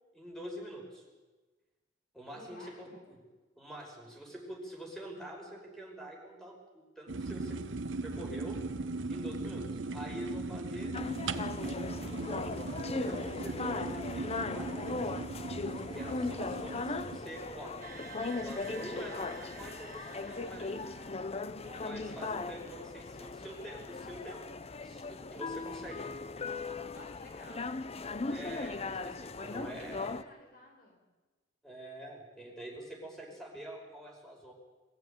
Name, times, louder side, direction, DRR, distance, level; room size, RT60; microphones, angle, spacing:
voice 1, 0.1-1.0 2.1-3.2 3.6-7.6 8.0-8.6 9.1-9.6 9.9-10.9 11.9-12.2 12.9-15.2 15.9-17.8 18.3-20.7 21.8-24.4 24.8-26.0 28.3-30.1 31.6-34.5, right 1 dB, 5° left, 0 dB, 5.6 m, -45 dB
voice 2, 2.3-3.1 21.6-22.0 26.6-27.9 29.3-31.1, left 1 dB, 50° left, 2 dB, 4.5 m, -54 dB
sound 1, 7.1-17.2, right 3 dB, 90° right, 1.0 m, -38 dB
sound 2, 10.9-30.2, left 3 dB, 35° left, 0.7 m, -38 dB
sound 3, 17.8-21.6, right 7 dB, 50° right, 1.5 m, -51 dB
23.0 x 15.0 x 9.1 m, 1.2 s
head